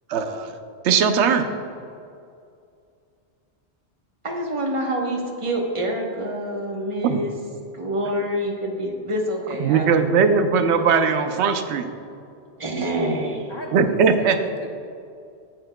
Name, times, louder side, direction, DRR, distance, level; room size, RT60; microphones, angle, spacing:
voice 1, 0.1-0.6 0.8-1.5 7.0-7.2 9.6-11.9 13.7-14.4, right 6 dB, 80° right, 8 dB, 0.9 m, -19 dB
voice 2, 4.2-7.4 7.7-10.2 12.6-13.5, equal, 30° right, 1 dB, 1.0 m, -26 dB
voice 3, 13.5-14.7, left 1 dB, 25° left, 0 dB, 0.9 m, -36 dB
15.0 x 6.0 x 2.2 m, 2.4 s
omnidirectional pair, 1.1 m